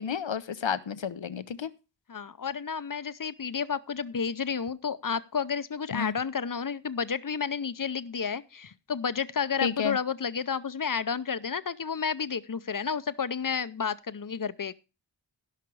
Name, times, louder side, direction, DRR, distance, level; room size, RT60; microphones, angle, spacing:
voice 1, 0.0-1.7 5.9-6.1 9.6-10.0, left 7 dB, 85° left, 14 dB, 0.7 m, -31 dB
voice 2, 2.1-14.7, left 6 dB, 50° left, 16 dB, 0.6 m, -31 dB
16.5 x 5.9 x 4.6 m, 0.30 s
wide cardioid pair, 45°, 44 cm